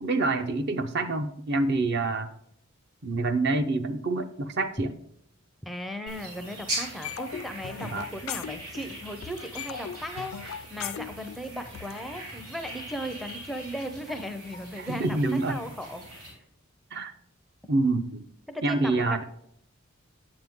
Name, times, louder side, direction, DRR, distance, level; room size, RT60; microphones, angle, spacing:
voice 1, 0.0-2.3 3.0-5.0 7.9-8.1 14.8-15.6 16.9-17.1 17.7-18.3 18.6-19.2, right 2 dB, 50° right, 8 dB, 0.6 m, -27 dB
voice 2, 5.6-15.2 15.5-16.1 18.5-19.2, equal, ahead, 6 dB, 0.4 m, -37 dB
sound 1, 6.1-16.3, right 1 dB, 85° right, 3.8 m, -41 dB
sound 2, 7.0-9.0 9.2-12.0, left 9 dB, 70° left, 0.3 m, -38 dB
9.3 x 7.5 x 3.6 m, 0.72 s
head